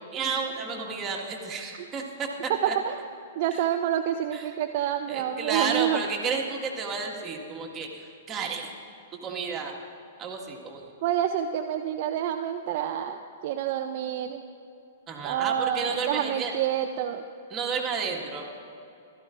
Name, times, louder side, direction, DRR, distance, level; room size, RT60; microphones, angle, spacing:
voice 1, 0.1-2.7 4.3-4.5 5.1-8.7 9.1-9.7 10.2-10.9 15.1-16.5 17.5-18.4, right 5 dB, 25° right, 0 dB, 1.6 m, -32 dB
voice 2, 2.6-3.0 3.4-6.0 11.0-14.4 15.2-17.2, right 10 dB, 50° right, 5 dB, 0.4 m, -28 dB
16.0 x 13.0 x 2.5 m, 2.6 s
hypercardioid pair, 115°, 0 cm